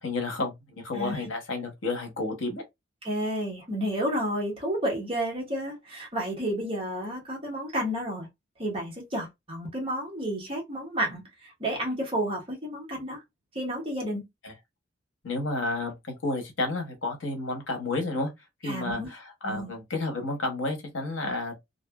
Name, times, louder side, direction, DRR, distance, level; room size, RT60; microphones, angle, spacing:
voice 1, 0.0-2.6 14.4-14.5 15.2-18.3 18.6-21.5, left 2 dB, 80° left, 1.0 m, -31 dB
voice 2, 3.0-8.3 8.6-13.2 13.5-14.2 18.6-19.1 19.4-19.8, equal, 30° right, 1.1 m, -31 dB
2.6 x 2.5 x 2.3 m
head